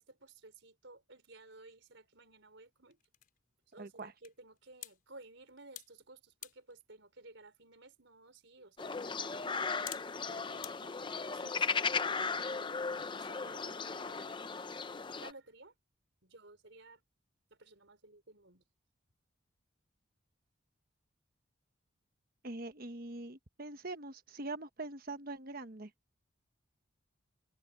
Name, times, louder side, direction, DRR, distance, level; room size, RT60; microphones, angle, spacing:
voice 1, 0.0-3.0 3.7-10.0 10.3-12.0 12.4-12.8 13.1-14.4 15.2-15.7 16.2-17.0 17.5-18.6, right 2 dB, 65° right, 4.9 m, -56 dB
sound 1, 1.4-10.7, left 12 dB, 45° left, 5.5 m, -55 dB
voice 2, 3.8-4.1 22.4-25.9, right 2 dB, 45° right, 1.2 m, -43 dB
sound 2, 8.8-15.3, left 5 dB, 25° left, 0.6 m, -36 dB
head